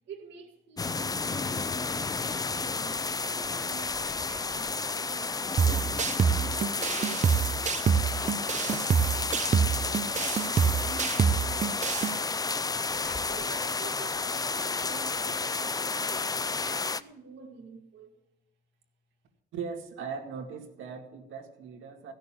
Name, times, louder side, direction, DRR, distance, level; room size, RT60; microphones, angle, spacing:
voice 1, 0.1-18.1, right 5 dB, 65° right, 2.0 m, -49 dB
sound 1, 0.8-17.0, left 4 dB, 20° left, 0.5 m, -31 dB
sound 2, 5.6-12.2, right 7 dB, 35° right, 0.7 m, -26 dB
voice 2, 19.5-22.1, right 6 dB, 85° right, 2.1 m, -39 dB
15.5 x 6.6 x 8.8 m
cardioid pair, 90°, 20 cm